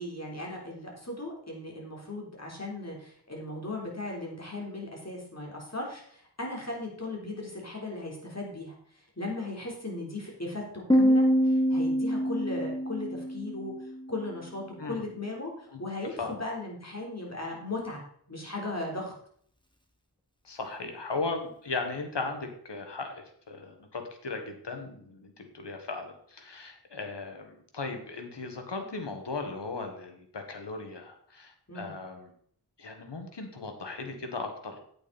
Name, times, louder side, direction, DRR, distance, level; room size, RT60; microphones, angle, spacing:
voice 1, 0.0-18.0 18.3-19.1 31.7-32.0, left 2 dB, 40° left, -1 dB, 3.8 m, -37 dB
Piano, 10.9-14.3, equal, 10° left, 1.9 m, -25 dB
voice 2, 20.4-32.3 32.8-34.8, left 3 dB, 90° left, 5 dB, 1.6 m, -37 dB
8.9 x 8.7 x 4.2 m, 0.63 s
wide cardioid pair, 40°, 41 cm